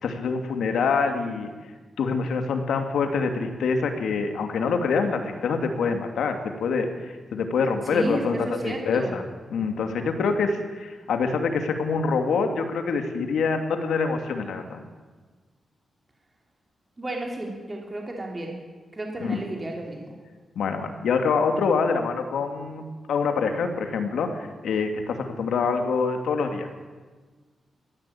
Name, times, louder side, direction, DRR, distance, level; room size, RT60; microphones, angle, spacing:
voice 1, 0.0-1.5 2.0-9.2 9.5-14.8 19.2-19.4 20.6-26.7, left 5 dB, 90° left, 5 dB, 2.6 m, -25 dB
voice 2, 7.8-9.2 17.0-18.5 18.9-20.2, right 1 dB, 15° right, 1 dB, 3.2 m, -32 dB
21.0 x 15.0 x 8.7 m, 1.4 s
wide cardioid pair, 175°, 0 cm